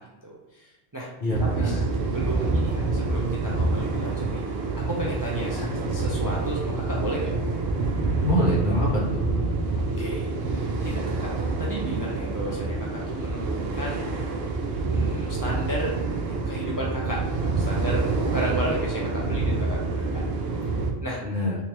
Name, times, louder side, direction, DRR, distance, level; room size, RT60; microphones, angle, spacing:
voice 1, 0.0-1.1 1.6-1.8 2.1-4.4 4.9-5.6 5.9-7.3 9.8-14.1 14.9-15.9 16.2-20.2 21.0-21.2, right 1 dB, 25° right, -4 dB, 0.4 m, -33 dB
voice 2, 1.2-1.9 5.4-5.7 8.2-9.2 21.2-21.6, left 1 dB, 50° left, -3 dB, 0.9 m, -26 dB
sound 1, 1.3-12.3, left 5 dB, 90° left, 1.0 m, -43 dB
sound 2, 1.3-20.9, right 3 dB, 70° right, 0.8 m, -27 dB
3.4 x 3.0 x 2.9 m, 1.1 s
omnidirectional pair, 1.1 m